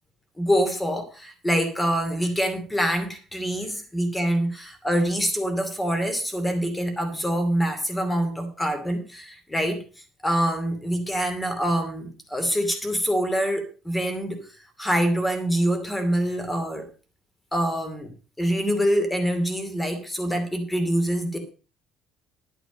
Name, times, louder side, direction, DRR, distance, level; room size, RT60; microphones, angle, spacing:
voice 1, 0.4-9.8 10.2-14.5 14.8-16.9 17.5-18.1 18.4-21.4, equal, 10° left, 7 dB, 2.6 m, -25 dB
11.5 x 9.2 x 5.2 m, 0.35 s
cardioid pair, 145°, 0 cm